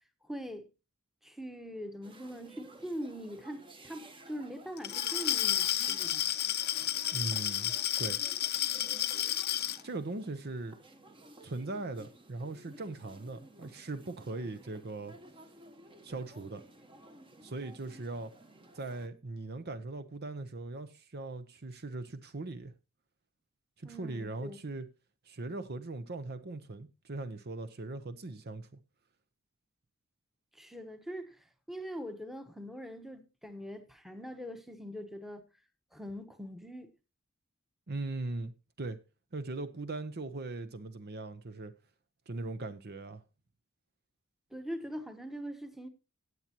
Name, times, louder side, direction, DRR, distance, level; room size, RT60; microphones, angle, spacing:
voice 1, 0.3-0.7 1.2-6.3 8.7-9.2 23.8-24.6 30.5-31.4 31.7-35.4 35.9-36.9 44.5-45.9, equal, ahead, 1.1 m, -42 dB
sound 1, 2.0-19.1, right 1 dB, 25° right, 1.1 m, -54 dB
Glass, 4.8-9.8, left 12 dB, 50° left, 0.7 m, -31 dB
voice 2, 7.1-7.7 8.0-8.2 9.8-10.8 11.4-15.1 16.0-16.6 17.4-18.3 18.7-22.7 23.8-24.9 25.3-28.8 37.9-38.5 38.8-39.0 39.3-41.7 42.3-43.2, right 2 dB, 50° right, 0.8 m, -39 dB
17.5 x 7.4 x 2.9 m
head